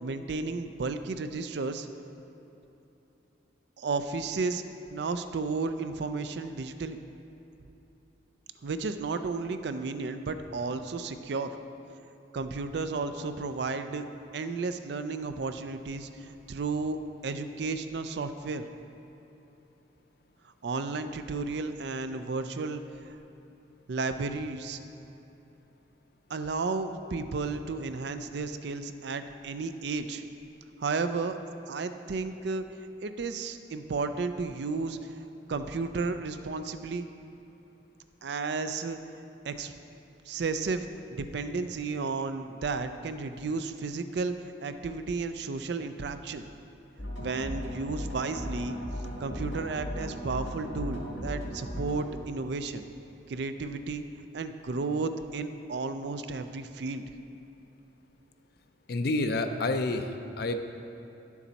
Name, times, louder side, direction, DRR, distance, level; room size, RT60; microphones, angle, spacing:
voice 1, 0.0-1.9 3.8-4.6 4.9-7.0 8.6-11.5 12.3-14.0 14.3-17.0 17.2-18.6 20.6-22.8 23.9-24.8 26.3-30.2 30.8-31.3 31.7-32.6 33.0-35.0 35.5-37.1 38.2-39.0 39.4-39.7 40.3-44.3 44.6-46.5 47.2-48.8 49.2-52.9 53.3-54.0 54.3-57.0, right 4 dB, 60° right, 9 dB, 0.4 m, -33 dB
sound 1, 47.0-52.1, equal, 80° left, 1.5 m, -37 dB
voice 2, 58.9-60.6, left 2 dB, 50° left, 7 dB, 0.5 m, -29 dB
10.0 x 7.2 x 4.1 m, 3.0 s
head